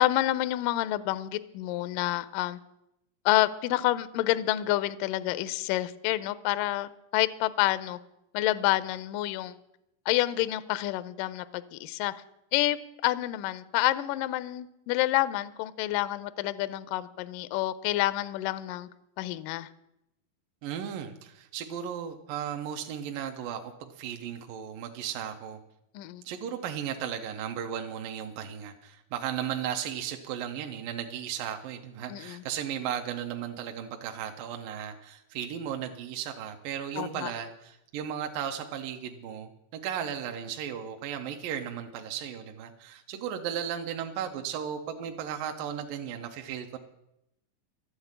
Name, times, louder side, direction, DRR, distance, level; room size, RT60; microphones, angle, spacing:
voice 1, 0.0-2.6 3.3-8.0 8.3-9.6 10.1-12.1 12.5-18.9 19.2-19.7 25.9-26.2 32.1-32.4 37.0-37.3, left 16 dB, 85° left, 14 dB, 1.9 m, -28 dB
voice 2, 20.6-25.6 26.2-46.8, right 9 dB, 75° right, 4 dB, 2.3 m, -35 dB
12.5 x 8.1 x 8.9 m, 0.84 s
omnidirectional pair, 4.5 m